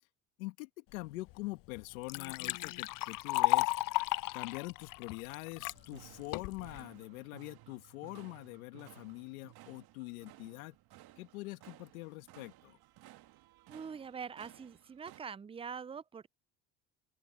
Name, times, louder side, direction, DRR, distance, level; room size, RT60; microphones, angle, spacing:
voice 1, 0.4-4.0 4.3-10.8 11.2-12.8, left 21 dB, 85° left, 2.1 m, -44 dB
Liquid, 1.3-1.4 1.8-5.8 6.3-6.8, left 19 dB, 50° left, 0.5 m, -33 dB
sound 1, 5.6-15.2, right 16 dB, 60° right, 2.1 m, -58 dB
voice 2, 13.7-16.3, right 6 dB, 15° right, 0.4 m, -44 dB
open air
hypercardioid pair, 70°, 41 cm